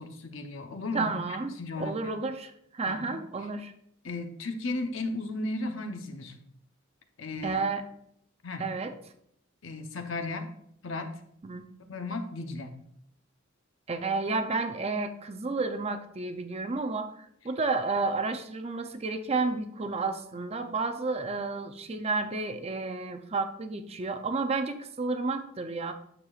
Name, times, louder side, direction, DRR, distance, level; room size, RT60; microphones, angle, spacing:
voice 1, 0.0-2.1 2.9-3.2 4.0-6.3 7.2-7.6 8.4-8.7 9.6-10.5 10.8-11.1 11.9-12.8, left 2 dB, 70° left, 6 dB, 0.8 m, -35 dB
voice 2, 0.9-3.7 7.4-7.8 8.6-8.9 11.4-11.7 13.9-25.9, right 3 dB, 30° right, 8 dB, 0.5 m, -31 dB
8.9 x 6.6 x 2.4 m, 0.71 s
head